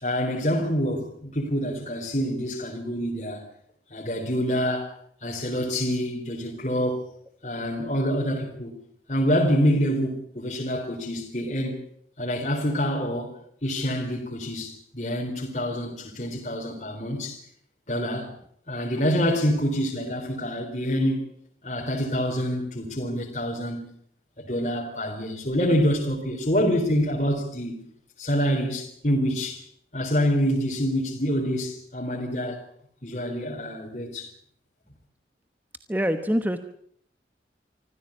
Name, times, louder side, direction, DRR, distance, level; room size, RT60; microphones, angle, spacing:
voice 1, 0.0-3.4 3.9-4.9 5.2-7.0 7.4-8.8 9.1-11.8 12.2-13.4 13.6-17.4 17.9-18.3 18.7-21.2 21.6-23.9 24.4-27.8 28.2-29.6 29.9-32.6 33.0-34.3, equal, 40° left, 3.8 m, -26 dB
voice 2, 35.9-36.6, equal, 10° right, 1.1 m, -24 dB
25.5 x 15.0 x 8.6 m
head